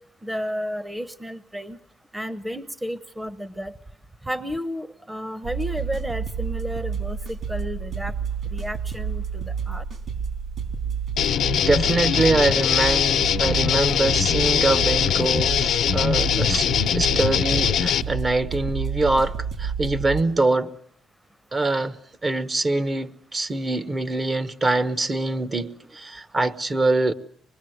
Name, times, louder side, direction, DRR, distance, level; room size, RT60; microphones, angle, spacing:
voice 1, 0.2-1.8 2.1-3.7 4.3-8.1 8.5-9.8, equal, 10° right, 1.0 m, -32 dB
sound 1, 5.4-20.2, right 6 dB, 55° right, 3.4 m, -30 dB
sound 2, 11.2-18.0, left 9 dB, 70° left, 0.9 m, -22 dB
voice 2, 11.6-16.7 16.9-20.7 21.5-27.1, right 2 dB, 30° right, 1.1 m, -24 dB
24.5 x 21.0 x 7.9 m
cardioid pair, 90°, 0 cm